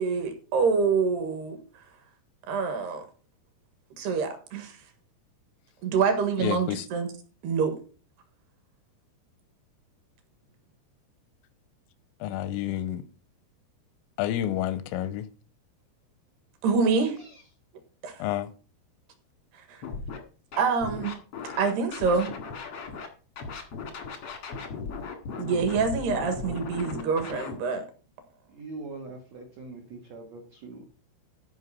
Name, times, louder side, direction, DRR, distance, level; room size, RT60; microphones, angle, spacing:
voice 1, 0.0-1.6 2.5-3.0 4.0-4.8 5.8-7.1 7.4-7.8 16.6-17.2 18.0-18.2 19.7-19.8 20.6-21.2 21.6-22.3 25.4-27.9, right 5 dB, 65° right, 3.1 m, -26 dB
voice 2, 6.4-6.8 12.2-13.0 14.2-15.3 18.2-18.5, left 12 dB, 90° left, 3.3 m, -29 dB
Scratching (performance technique), 19.8-20.2 20.5-23.1 23.4-27.5, left 5 dB, 70° left, 1.4 m, -37 dB
voice 3, 28.5-30.8, right 3 dB, 90° right, 1.5 m, -42 dB
13.5 x 5.4 x 5.6 m
omnidirectional pair, 5.8 m